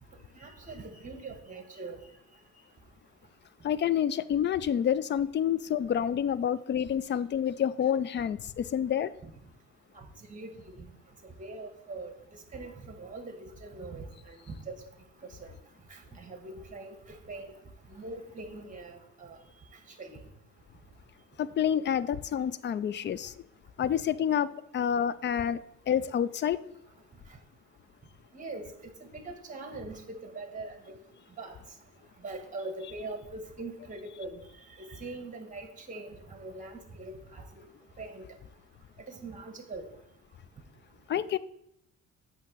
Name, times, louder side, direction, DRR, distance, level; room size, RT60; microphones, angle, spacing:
voice 1, 0.3-2.0 9.9-10.5 10.8-10.9 11.4-12.1 12.5-14.7 15.4-15.5 15.9-17.5 17.9-19.4 20.0-20.2 28.3-28.7 29.0-30.8 31.4-31.5 32.2-34.4 34.8-37.6 38.0-38.2 39.1-39.8, right 2 dB, 25° right, 1.4 m, -42 dB
voice 2, 3.6-9.1 21.4-23.3 23.8-26.6 41.1-41.4, left 9 dB, 40° left, 0.4 m, -28 dB
8.2 x 2.9 x 6.2 m
cardioid pair, 90°, 30 cm